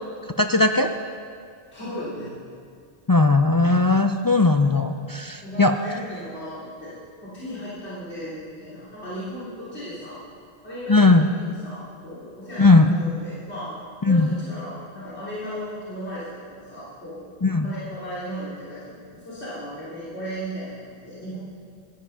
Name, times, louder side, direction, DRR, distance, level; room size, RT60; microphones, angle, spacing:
voice 1, 0.4-0.9 3.1-5.8 10.9-11.3 12.6-13.0 14.0-14.3 17.4-17.7, left 3 dB, 35° left, 5 dB, 0.3 m, -18 dB
voice 2, 1.7-2.3 3.6-3.7 5.4-6.9 7.2-10.2 10.6-11.1 11.3-13.7 14.0-21.4, equal, 80° left, -11 dB, 3.5 m, -36 dB
15.5 x 11.5 x 5.5 m, 2.2 s
omnidirectional pair, 1.1 m